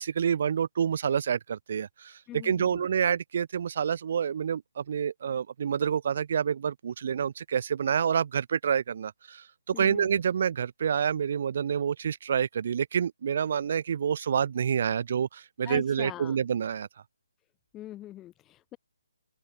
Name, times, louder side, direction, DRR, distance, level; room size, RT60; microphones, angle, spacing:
voice 1, 0.0-16.9, right 7 dB, 45° right, 4.3 m, -28 dB
voice 2, 2.3-2.9 9.7-10.1 15.6-16.4 17.7-18.8, left 14 dB, 15° left, 5.3 m, -42 dB
open air
figure-of-eight pair, 145°, 0 cm